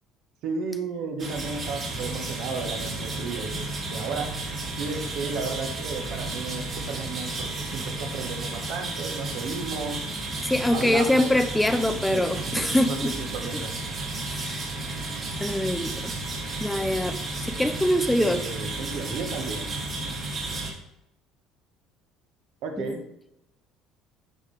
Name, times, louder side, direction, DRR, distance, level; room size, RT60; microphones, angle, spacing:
voice 1, 0.4-4.3 4.8-10.0 10.7-11.3 12.1-13.7 18.2-19.7 22.6-23.0, right 4 dB, 65° right, 4 dB, 1.3 m, -33 dB
sound 1, 1.2-20.7, right 2 dB, 40° right, 2.3 m, -33 dB
voice 2, 10.4-13.1 13.5-13.6 14.3-14.6 15.4-16.1 16.6-18.4 22.8-22.9, left 1 dB, 5° left, 10 dB, 0.4 m, -24 dB
11.0 x 4.4 x 3.4 m, 0.84 s
cardioid pair, 115°, 0 cm